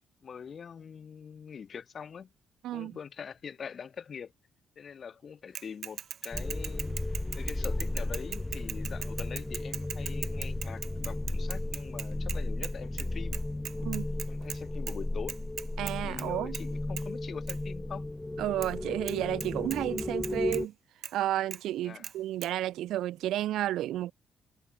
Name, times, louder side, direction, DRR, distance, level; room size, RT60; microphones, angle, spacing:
voice 1, 0.2-2.3 2.7-4.3 4.8-7.0 7.3-13.4 14.3-15.4 16.0-18.0 21.8-22.1, left 7 dB, 50° left, 2.3 m, -43 dB
Bicycle / Mechanisms, 5.6-12.7 13.0-13.1 13.3-14.6 14.9-15.0 15.3-16.3 16.5-16.7 17.0-17.1 17.5-17.6 18.6-18.7 19.1-19.2 19.4-20.6 21.0-21.1 21.5-21.6 22.0-22.1 22.4-22.5, right 8 dB, 60° right, 0.9 m, -39 dB
sound 1, 6.3-20.7, left 2 dB, 15° left, 2.1 m, -34 dB
voice 2, 15.8-16.5 18.4-20.7 21.1-24.1, right 13 dB, 85° right, 0.5 m, -32 dB
cardioid pair, 90°, 0 cm